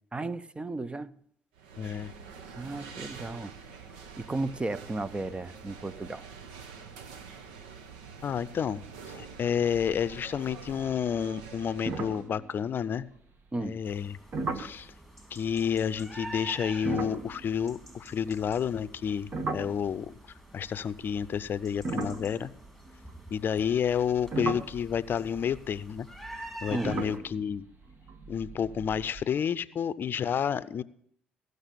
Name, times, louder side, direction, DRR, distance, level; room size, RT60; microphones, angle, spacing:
voice 1, 0.1-1.2 2.6-3.5 4.2-6.3 13.5-13.8 26.7-27.0, right 2 dB, 25° right, 0.7 m, -34 dB
sound 1, 1.6-12.3, right 5 dB, 85° right, 1.0 m, -46 dB
voice 2, 1.8-2.1 8.2-13.1 13.6-14.2 14.5-14.9 15.3-20.1 20.5-22.5 23.3-26.1 26.6-27.6 28.3-30.8, left 8 dB, 50° left, 0.6 m, -30 dB
sound 2, 9.7-10.4 10.7-11.1 11.4-11.5 11.9-13.2 14.3-14.8 16.7-20.3 21.1-23.3 23.9-29.2, right 3 dB, 50° right, 1.4 m, -37 dB
sound 3, 13.8-27.2, right 1 dB, 5° right, 3.7 m, -47 dB
16.0 x 6.6 x 6.8 m
hypercardioid pair, 55°, 4 cm